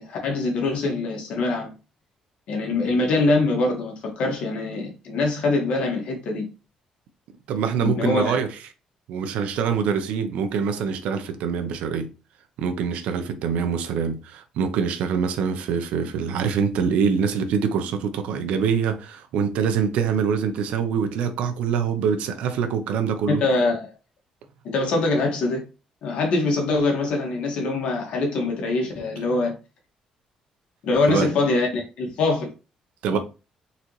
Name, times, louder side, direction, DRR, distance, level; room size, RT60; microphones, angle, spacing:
voice 1, 0.0-1.7 2.5-6.4 7.8-8.4 23.3-23.9 24.6-25.6 26.0-29.5 30.8-32.5 33.1-33.2, left 3 dB, 65° left, 1.6 m, -23 dB
voice 2, 7.5-8.5 9.1-12.1 12.6-23.4 31.1-31.3 33.0-33.2, right 6 dB, 85° right, 0.8 m, -24 dB
4.1 x 4.0 x 3.1 m
cardioid pair, 175°, 2 cm